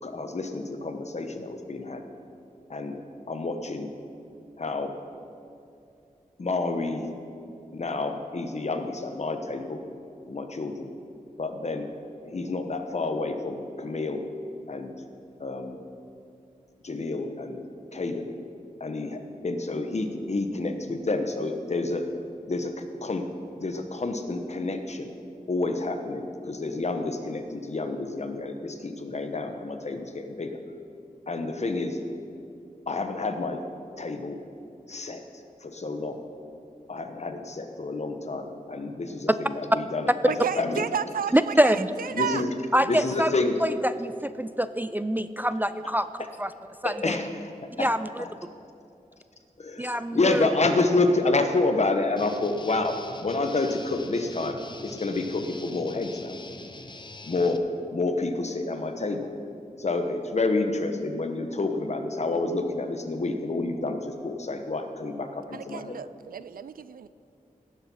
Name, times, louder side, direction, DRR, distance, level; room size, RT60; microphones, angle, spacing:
voice 1, 0.0-2.0 2.7-3.9 4.6-4.9 6.4-7.1 7.7-9.8 10.2-10.9 11.4-11.9 12.2-14.2 14.7-15.0 15.4-15.8 16.8-17.6 17.9-18.3 18.8-22.1 22.5-23.3 23.6-25.1 25.5-30.6 31.3-32.0 32.9-33.6 34.0-34.4 34.9-35.2 35.6-36.2 36.9-40.9 42.1-42.5 42.8-43.6 46.8-47.5 47.8-47.9 48.2-48.3 49.6-56.3 57.2-57.6 57.9-59.3 59.8-66.0, left 3 dB, 50° left, 6 dB, 1.0 m, -29 dB
voice 2, 40.2-42.4 65.5-67.1, right 8 dB, 90° right, 15 dB, 0.4 m, -32 dB
voice 3, 41.3-41.9 42.7-43.3 43.6-46.1 46.4-46.5 46.8-47.2 47.8-48.3 49.8-50.5, equal, 15° right, 12 dB, 0.3 m, -25 dB
Guitar, 52.2-57.6, left 2 dB, 35° left, 0.7 m, -44 dB
17.0 x 7.4 x 5.6 m, 2.6 s
wide cardioid pair, 80°, 14 cm